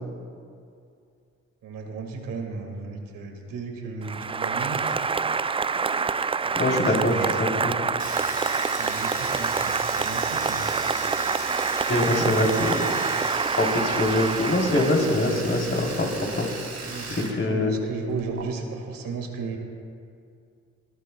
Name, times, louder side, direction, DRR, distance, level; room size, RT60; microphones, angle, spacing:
voice 1, 1.6-5.0 6.4-7.9 8.7-10.6 16.8-19.6, right 4 dB, 70° right, 3 dB, 1.8 m, -35 dB
Applause, 4.0-15.5, right 5 dB, 15° right, 0.3 m, -27 dB
voice 2, 6.5-7.7 11.9-12.8 13.6-16.1 16.3-16.5 17.1-17.7, left 1 dB, 35° left, 0 dB, 3.3 m, -23 dB
Domestic sounds home sounds, 8.0-17.3 17.6-18.4, right 3 dB, 50° right, 2.8 m, -35 dB
23.0 x 13.0 x 2.2 m, 2.4 s
hypercardioid pair, 40°, 34 cm